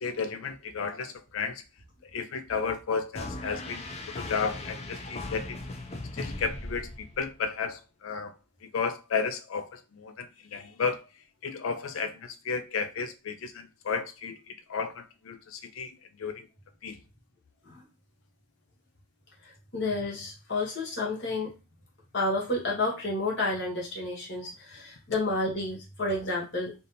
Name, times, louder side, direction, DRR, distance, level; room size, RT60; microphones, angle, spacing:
voice 1, 0.0-1.6 2.1-3.8 4.1-5.6 6.1-8.3 8.7-10.3 10.5-11.0 11.4-14.4 14.7-15.9 16.2-16.5 16.8-17.0, left 5 dB, 90° left, 0.5 m, -33 dB
sound 1, 3.2-7.4, left 2 dB, 30° left, 0.6 m, -38 dB
voice 2, 19.7-21.5 22.1-26.7, left 2 dB, 60° left, 1.6 m, -30 dB
3.4 x 2.8 x 3.9 m
head